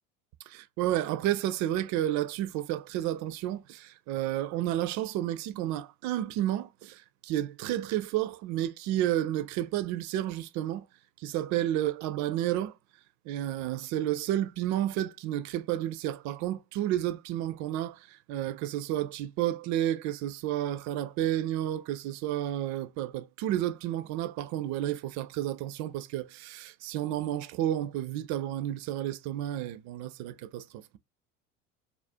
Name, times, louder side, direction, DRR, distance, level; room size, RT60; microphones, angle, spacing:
voice 1, 0.5-10.9 11.2-12.7 13.3-30.8, right 12 dB, 50° right, 0.4 m, -31 dB
2.4 x 2.1 x 2.5 m
hypercardioid pair, 75°, 37 cm